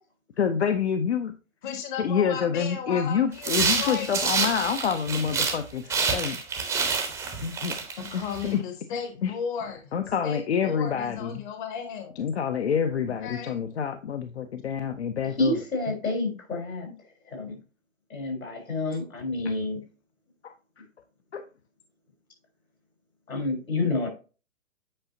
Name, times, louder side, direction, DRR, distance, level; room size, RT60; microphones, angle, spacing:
voice 1, 0.4-1.3 2.0-6.4 7.4-7.7 8.1-8.2 8.5-8.6 9.2-9.3 9.9-11.4 12.2-15.6 20.4-20.5 21.3-21.4, left 7 dB, 55° left, 8 dB, 0.7 m, -27 dB
voice 2, 1.6-4.1 8.0-9.9 10.2-12.1 13.2-13.6 16.9-17.0, left 7 dB, 35° left, 7 dB, 1.0 m, -35 dB
sound 1, 3.4-5.6 5.9-8.5, right 5 dB, 5° right, 0.7 m, -28 dB
voice 3, 15.4-16.9 17.3-17.6 18.1-19.8 23.3-24.1, left 2 dB, 75° left, 2 dB, 3.7 m, -28 dB
8.8 x 4.9 x 2.7 m, 0.33 s
figure-of-eight pair, 125°, 41 cm